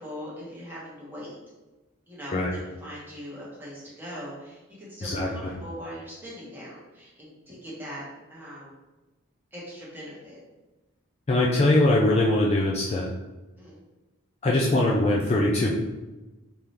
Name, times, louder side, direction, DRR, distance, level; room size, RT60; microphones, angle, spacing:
voice 1, 0.0-1.3 2.1-8.8 9.5-10.4 13.6-13.8, equal, 10° right, -7 dB, 1.1 m, -41 dB
voice 2, 11.3-13.1 14.4-15.7, left 1 dB, 30° left, -4 dB, 0.4 m, -22 dB
3.8 x 2.8 x 3.2 m, 1.1 s
head